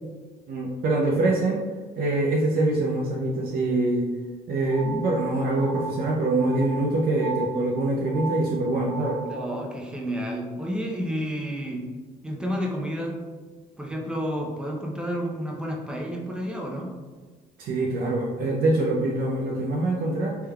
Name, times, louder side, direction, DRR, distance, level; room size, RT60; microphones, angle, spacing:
voice 1, 0.5-1.6 2.0-4.1 4.5-9.2 17.6-20.4, right 2 dB, 60° right, -2 dB, 0.5 m, -24 dB
sound 1, 4.7-9.6, right 4 dB, 35° left, 0.8 m, -37 dB
voice 2, 9.2-11.8 12.2-13.1 13.8-16.9, equal, 5° right, -1 dB, 0.6 m, -30 dB
3.4 x 3.3 x 2.2 m, 1.4 s
cardioid pair, 110°, 17 cm